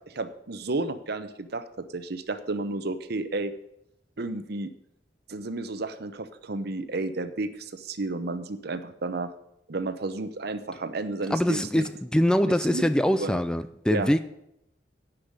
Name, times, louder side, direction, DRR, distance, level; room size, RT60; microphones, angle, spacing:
voice 1, 0.1-3.5 4.2-4.7 5.3-9.3 9.7-11.9 12.4-12.8 13.1-13.4 13.9-14.1, right 2 dB, 60° right, 0.8 m, -32 dB
voice 2, 11.3-14.2, equal, 5° left, 0.3 m, -23 dB
10.0 x 5.7 x 8.1 m
head